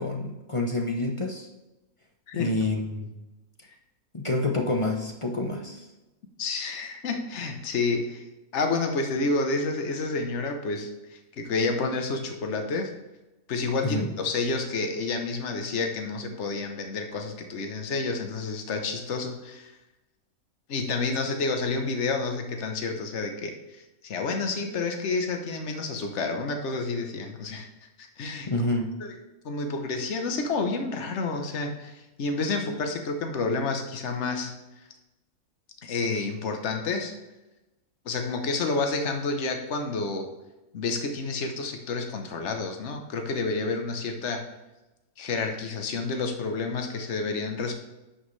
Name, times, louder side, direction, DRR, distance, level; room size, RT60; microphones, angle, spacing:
voice 1, 0.0-1.5 2.3-3.1 4.1-5.9 13.8-14.1 28.5-28.9, left 2 dB, 30° left, 2 dB, 0.7 m, -28 dB
voice 2, 6.4-8.2 8.5-12.9 13.5-19.8 20.7-27.7 28.0-28.5 29.0-29.1 29.4-34.6 35.8-37.1 38.0-40.3 40.7-44.5 45.2-47.7, left 3 dB, 55° left, 4 dB, 1.2 m, -29 dB
11.0 x 6.4 x 3.3 m, 1.0 s
omnidirectional pair, 1.5 m